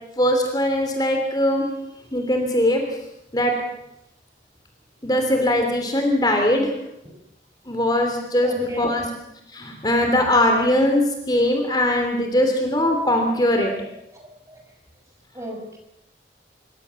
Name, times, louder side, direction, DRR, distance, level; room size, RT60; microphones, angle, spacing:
voice 1, 0.2-1.7 2.1-2.8 3.3-3.5 5.0-6.7 7.7-9.1 9.5-13.7, left 1 dB, 25° left, 3 dB, 3.2 m, -20 dB
voice 2, 8.4-9.1 14.1-14.6 15.3-15.8, equal, 15° right, 2 dB, 6.3 m, -34 dB
27.0 x 23.5 x 7.1 m, 0.86 s
head